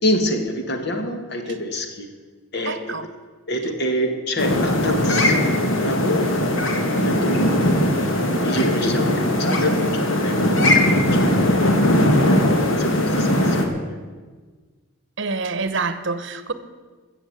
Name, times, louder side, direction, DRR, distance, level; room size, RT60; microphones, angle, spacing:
voice 1, 0.0-2.1 2.5-3.0 3.5-12.5 12.8-14.0, equal, 50° left, 5 dB, 1.7 m, -27 dB
voice 2, 2.7-3.1 15.2-16.5, right 4 dB, 55° right, 12 dB, 0.9 m, -26 dB
sound 1, 4.4-13.7, left 1 dB, 65° left, 1.8 m, -19 dB
14.0 x 7.3 x 8.6 m, 1.4 s
head